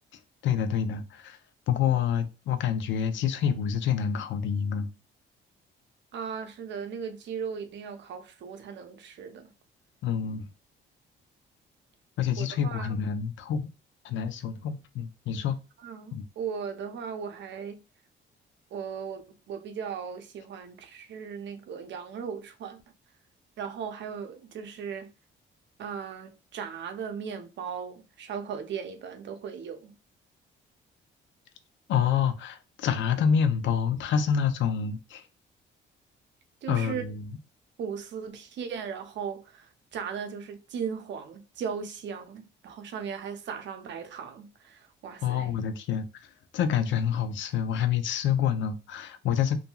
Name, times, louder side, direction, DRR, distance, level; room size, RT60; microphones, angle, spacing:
voice 1, 0.4-1.4 1.7-4.9 10.0-10.5 12.2-13.7 14.0-15.6 16.1-16.2 31.9-35.2 36.7-37.3 45.2-46.1 46.5-49.6, left 8 dB, 70° left, 0.5 m, -27 dB
voice 2, 6.1-9.5 12.4-12.9 15.8-17.8 18.7-19.2 19.5-22.8 23.6-25.1 25.8-29.9 36.6-37.0 37.8-45.5, right 6 dB, 65° right, 0.6 m, -37 dB
2.7 x 2.6 x 2.3 m
cardioid pair, 90°, 20 cm